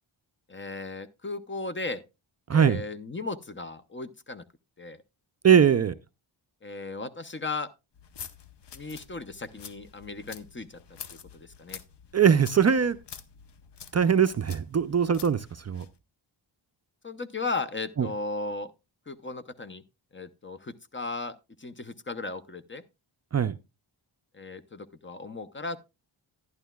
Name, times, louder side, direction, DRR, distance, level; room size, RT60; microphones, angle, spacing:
voice 1, 0.5-2.0 2.5-4.4 4.8-5.0 6.6-7.7 8.7-10.8 11.1-11.8 17.0-18.7 19.1-19.8 20.1-22.8 24.3-25.8, left 3 dB, 25° left, 0.6 m, -36 dB
voice 2, 2.5-2.8 5.4-5.9 12.1-13.0 13.9-15.9 18.0-18.1 23.3-23.5, right 7 dB, 35° right, 0.4 m, -21 dB
sound 1, 7.9-16.0, left 7 dB, 60° left, 0.8 m, -47 dB
11.0 x 11.0 x 2.3 m
wide cardioid pair, 100°, 47 cm